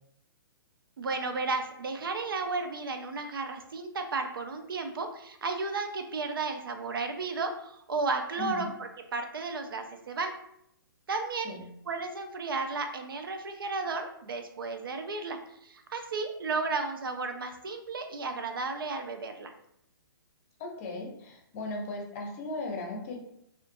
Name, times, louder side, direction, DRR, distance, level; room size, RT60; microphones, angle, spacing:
voice 1, 1.0-10.4 11.1-11.5 11.9-19.5, right 3 dB, 70° right, 6 dB, 0.4 m, -33 dB
voice 2, 8.4-8.7 11.4-11.7 20.6-23.2, left 2 dB, 40° left, 1 dB, 0.6 m, -37 dB
2.5 x 2.4 x 2.5 m, 0.75 s
figure-of-eight pair, 125°, 12 cm